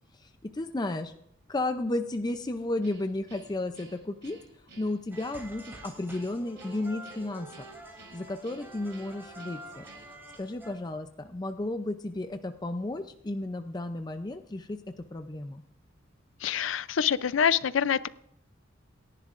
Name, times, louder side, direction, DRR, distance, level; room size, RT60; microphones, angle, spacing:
voice 1, 0.1-1.1 1.5-4.4 4.8-7.7 8.1-9.8 10.4-15.6, left 2 dB, 20° left, 7 dB, 0.5 m, -33 dB
Guitar, 2.8-10.4, right 4 dB, 60° right, 5.9 m, -54 dB
sound 1, 5.1-10.7, right 1 dB, 10° right, 3.0 m, -47 dB
voice 2, 16.4-18.1, left 8 dB, 70° left, 17 dB, 0.5 m, -26 dB
28.5 x 11.0 x 2.5 m, 0.77 s
head